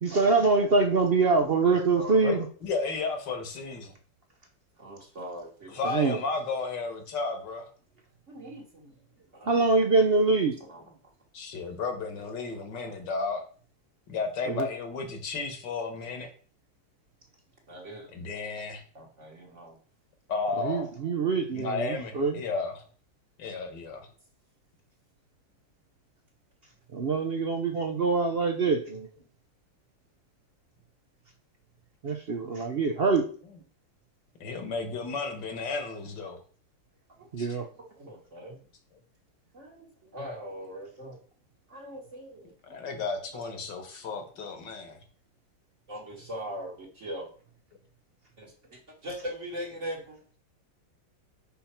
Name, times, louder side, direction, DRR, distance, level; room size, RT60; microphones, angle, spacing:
voice 1, 0.0-2.4 5.8-6.2 9.5-10.6 14.5-14.7 20.6-22.4 26.9-29.1 32.0-33.2 37.3-37.7, right 4 dB, 70° right, 5 dB, 0.5 m, -24 dB
voice 2, 1.6-2.4 4.8-6.1 8.3-8.9 9.3-10.0 10.7-10.8 17.7-18.1 18.9-19.8 37.2-37.3 38.0-38.6 39.5-39.9 40.1-41.2 41.7-42.5 45.9-47.3 48.4-50.2, equal, 40° right, -2 dB, 1.7 m, -41 dB
voice 3, 2.2-3.9 5.7-7.7 11.3-13.4 14.1-16.3 18.1-18.8 20.3-20.9 21.5-22.8 23.4-24.1 27.5-27.6 34.4-36.4 37.4-37.5 42.7-45.0, left 4 dB, 70° left, 6 dB, 1.8 m, -33 dB
5.7 x 5.6 x 4.3 m, 0.43 s
omnidirectional pair, 2.1 m